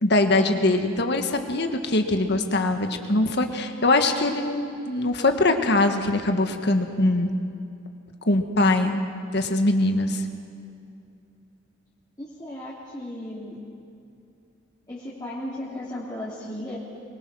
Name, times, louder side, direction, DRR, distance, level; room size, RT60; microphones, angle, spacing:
voice 1, 0.0-7.3 8.2-9.0 9.3-10.2, left 2 dB, 60° left, 6 dB, 1.6 m, -22 dB
voice 2, 12.2-13.6 14.9-16.8, left 1 dB, 20° left, -7 dB, 2.9 m, -35 dB
24.0 x 21.0 x 6.2 m, 2.6 s
head